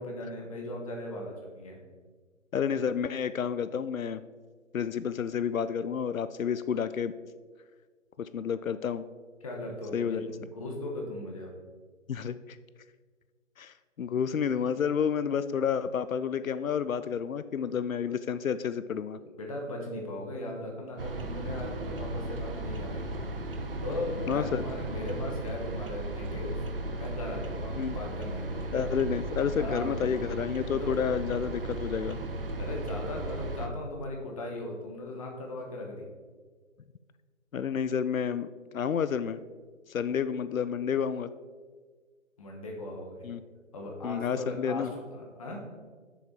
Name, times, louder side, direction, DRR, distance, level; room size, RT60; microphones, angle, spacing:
voice 1, 0.0-1.8 9.4-11.5 19.4-23.1 23.8-26.7 27.0-28.7 29.6-29.9 30.6-31.0 32.6-36.1 42.4-43.3 43.7-45.6, left 1 dB, 25° left, 0 dB, 1.2 m, -38 dB
voice 2, 2.5-4.2 4.7-7.1 8.2-9.0 9.9-10.2 12.1-12.6 13.6-19.2 24.3-24.7 27.7-28.0 28.7-32.2 37.5-38.5 38.7-39.4 39.9-41.3 43.2-43.4 44.0-44.9, left 7 dB, 90° left, 13 dB, 0.5 m, -30 dB
sound 1, 21.0-33.7, right 1 dB, 45° right, 0.7 m, -35 dB
7.0 x 6.8 x 4.4 m, 1.5 s
figure-of-eight pair, 150°, 39 cm